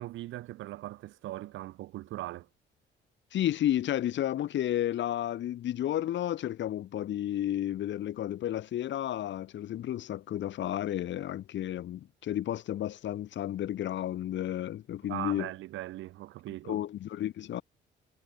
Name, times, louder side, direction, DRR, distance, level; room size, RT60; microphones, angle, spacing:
voice 1, 0.0-2.5 15.1-16.8, right 16 dB, 75° right, 0.5 m, -39 dB
voice 2, 3.3-15.5 16.6-17.6, left 12 dB, 70° left, 1.1 m, -32 dB
cardioid pair, 90°, 20 cm